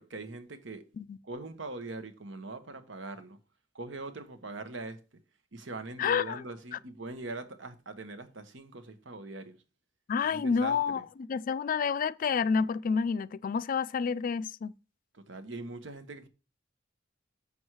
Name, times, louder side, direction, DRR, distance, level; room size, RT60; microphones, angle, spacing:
voice 1, 0.0-0.9 1.2-3.4 3.7-5.0 5.5-9.6 10.3-11.1 15.1-16.3, right 2 dB, 85° right, 1.2 m, -42 dB
voice 2, 6.0-6.4 10.1-11.0 11.3-14.7, left 6 dB, 45° left, 0.3 m, -29 dB
7.1 x 6.2 x 4.7 m
head